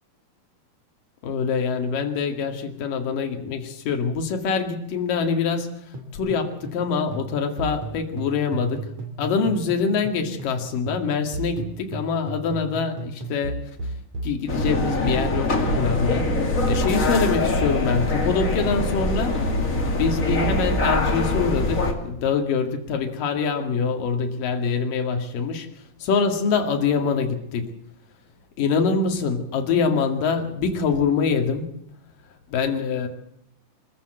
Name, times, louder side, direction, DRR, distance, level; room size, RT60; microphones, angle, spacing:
voice 1, 1.2-5.7 6.1-8.9 9.2-13.6 14.2-16.3 16.7-19.4 20.0-25.7 26.0-27.7 28.6-31.7 32.5-33.1, left 5 dB, 60° left, 5 dB, 3.7 m, -24 dB
sound 1, 5.9-10.6 10.9-20.9, right 5 dB, 45° right, 3.4 m, -32 dB
sound 2, 14.5-21.9, left 3 dB, 25° left, 2.2 m, -24 dB
25.5 x 14.5 x 7.9 m, 0.78 s
omnidirectional pair, 4.7 m